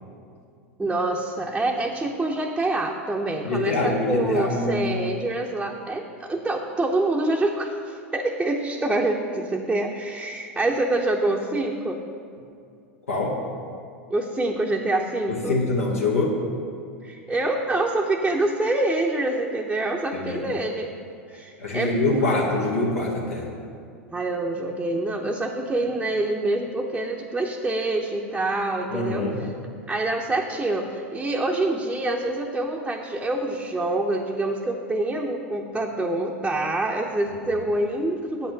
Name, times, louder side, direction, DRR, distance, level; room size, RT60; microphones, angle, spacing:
voice 1, 0.8-12.0 14.1-15.6 17.0-20.9 21.3-22.2 24.1-29.3 29.9-38.5, right 2 dB, 10° right, -1 dB, 0.7 m, -26 dB
voice 2, 3.4-4.8 13.1-13.3 15.3-16.3 20.1-20.6 21.6-23.5 28.9-29.4, left 2 dB, 90° left, -3 dB, 1.4 m, -24 dB
8.1 x 5.6 x 6.5 m, 2.4 s
hypercardioid pair, 90°, 7 cm